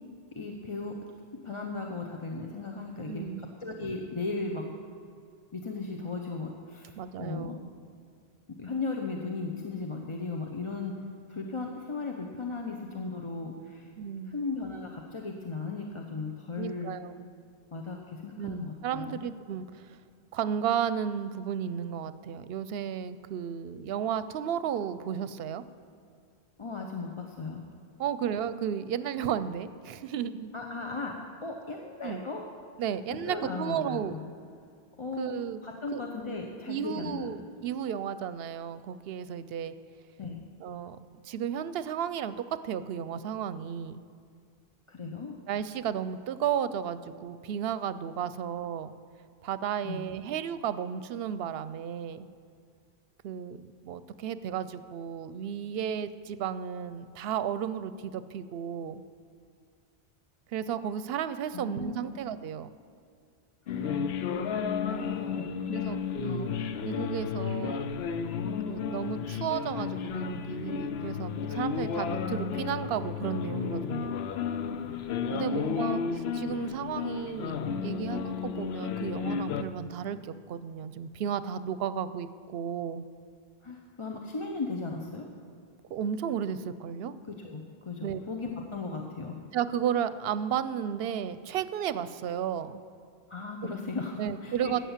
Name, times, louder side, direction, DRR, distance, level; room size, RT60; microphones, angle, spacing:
voice 1, 0.3-1.0 1.4-4.6 5.5-7.6 8.5-11.0 11.3-13.9 14.3-16.9 17.7-19.2 26.6-27.6 30.5-32.4 33.1-34.3 35.0-35.3 35.6-37.3 40.2-40.4 44.9-45.3 49.8-50.0 61.5-62.1 63.7-63.9 64.4-65.9 71.7-71.8 75.3-75.9 83.6-85.3 87.3-89.4 93.3-94.8, left 3 dB, 30° left, 2 dB, 0.8 m, -36 dB
voice 2, 3.1-3.6 7.0-7.7 14.0-14.4 16.6-17.3 18.4-20.0 20.3-25.6 28.0-30.5 32.0-32.2 32.8-34.2 35.2-35.6 35.9-36.0 36.7-39.7 40.6-41.0 41.2-44.1 45.5-48.9 49.4-52.3 53.2-59.0 60.5-62.7 65.4-66.5 66.8-67.9 68.7-74.1 75.3-76.0 76.3-83.1 85.9-87.2 88.0-88.2 89.5-92.8 94.2-94.8, right 8 dB, 75° right, 14 dB, 0.8 m, -33 dB
sound 1, 63.7-79.6, left 6 dB, 80° left, 0.9 m, -32 dB
13.0 x 8.6 x 7.2 m, 2.2 s
omnidirectional pair, 1.0 m